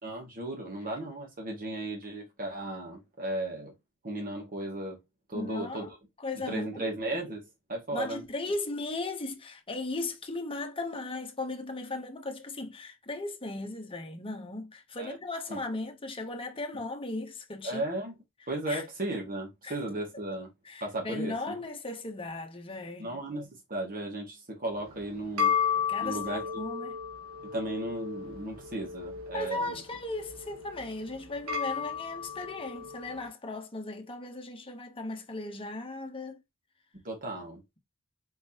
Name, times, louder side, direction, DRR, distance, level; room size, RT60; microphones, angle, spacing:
voice 1, 0.0-3.7 4.0-5.0 5.3-5.9 6.5-8.2 15.0-15.2 15.5-15.6 17.6-18.1 18.5-20.5 20.8-21.6 23.0-25.6 26.0-26.4 27.5-29.8 37.0-37.6, right 1 dB, 40° right, 2.0 m, -35 dB
voice 2, 5.3-5.9 6.2-6.9 7.9-17.8 18.7-18.8 19.6-19.8 20.6-23.1 25.8-27.0 29.3-36.4, left 2 dB, 25° left, 1.0 m, -37 dB
sound 1, 24.8-33.3, left 7 dB, 85° right, 1.8 m, -34 dB
4.6 x 3.8 x 2.9 m
head